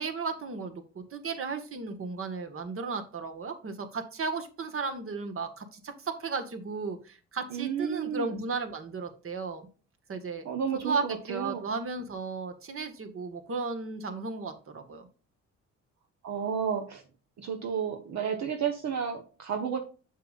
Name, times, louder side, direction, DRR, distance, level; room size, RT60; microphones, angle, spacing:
voice 1, 0.0-9.7 10.1-15.1, right 4 dB, 45° right, 6 dB, 1.7 m, -35 dB
voice 2, 7.5-8.4 10.4-11.6 16.2-17.0 17.4-19.8, right 7 dB, 60° right, 4 dB, 1.2 m, -32 dB
7.3 x 7.0 x 2.5 m, 0.35 s
cardioid pair, 90°, 30 cm